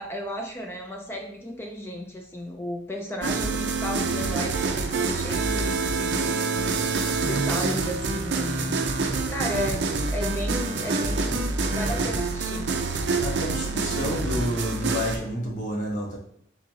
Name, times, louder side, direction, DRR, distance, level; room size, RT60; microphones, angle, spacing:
voice 1, 0.0-8.8 9.3-12.7, equal, 10° left, 2 dB, 0.4 m, -34 dB
sound 1, 3.2-15.2, right 3 dB, 60° right, 0.5 m, -26 dB
voice 2, 13.2-16.2, equal, 40° left, -2 dB, 0.8 m, -29 dB
4.0 x 2.5 x 4.5 m, 0.66 s
head